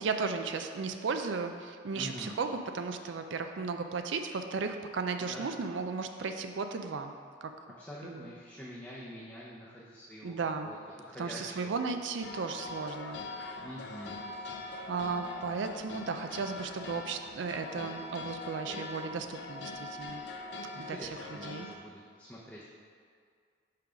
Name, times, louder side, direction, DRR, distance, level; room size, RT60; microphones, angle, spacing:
voice 1, 0.0-7.1 7.4-7.5 8.0-8.3 10.2-10.7 11.2-13.6 14.9-20.2 20.8-21.1 21.4-21.7, right 4 dB, 70° right, 7 dB, 0.4 m, -35 dB
voice 2, 1.9-2.4 5.2-5.5 7.8-10.4 10.6-10.8 11.1-11.8 13.6-14.2 20.7-22.6, equal, 10° left, -7 dB, 0.6 m, -45 dB
sound 1, 12.2-21.8, left 2 dB, 60° left, 0.5 m, -42 dB
5.8 x 4.7 x 5.0 m, 2.1 s
head